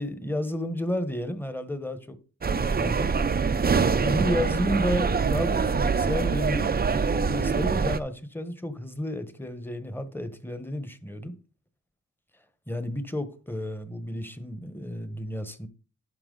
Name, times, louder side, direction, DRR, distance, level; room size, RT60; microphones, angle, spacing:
voice 1, 0.0-2.2 2.4-3.1 4.0-11.4 12.7-15.7, left 1 dB, 5° left, 1.2 m, -32 dB
sound 1, 2.4-8.0, right 5 dB, 30° right, 0.6 m, -24 dB
10.5 x 5.8 x 3.9 m
cardioid pair, 75°, 32 cm